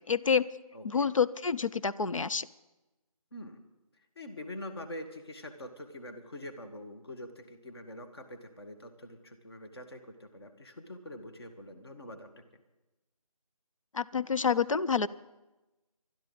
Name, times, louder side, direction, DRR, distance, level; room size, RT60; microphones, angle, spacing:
voice 1, 0.1-0.5 0.8-2.5 13.9-15.1, left 6 dB, 60° left, 15 dB, 0.6 m, -28 dB
voice 2, 0.7-1.1 3.3-3.6 4.1-12.3, left 1 dB, 40° left, 6 dB, 1.6 m, -45 dB
27.0 x 12.0 x 3.9 m, 1.1 s
figure-of-eight pair, 170°, 19 cm